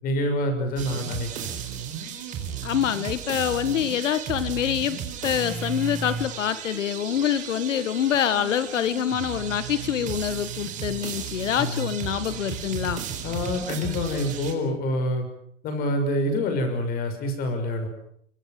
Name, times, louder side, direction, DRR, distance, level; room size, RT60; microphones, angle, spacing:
voice 1, 0.0-1.5 11.5-11.9 13.2-15.3 15.6-17.9, left 1 dB, 25° left, 7 dB, 6.3 m, -27 dB
sound 1, 0.8-14.5, right 7 dB, 20° right, 4.5 m, -34 dB
voice 2, 2.6-13.0, left 9 dB, 80° left, 14 dB, 1.7 m, -26 dB
25.5 x 24.5 x 7.7 m, 0.69 s
hypercardioid pair, 160°, 37 cm